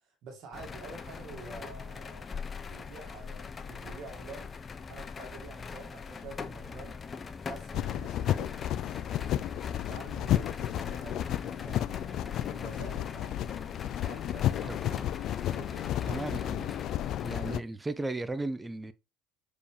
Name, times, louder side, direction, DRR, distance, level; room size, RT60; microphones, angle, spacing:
voice 1, 0.0-4.5 4.9-7.0 7.5-8.5 9.8-11.2 11.5-13.3 14.0-15.1 15.5-16.3, right 4 dB, 60° right, 2.0 m, -48 dB
sound 1, 0.5-17.5, left 5 dB, 30° left, 0.8 m, -42 dB
sound 2, 7.7-17.6, left 12 dB, 55° left, 0.4 m, -32 dB
voice 2, 14.7-15.0 16.1-16.7 17.2-18.9, right 2 dB, 15° right, 0.8 m, -35 dB
7.0 x 5.0 x 3.3 m
hypercardioid pair, 75°, 0 cm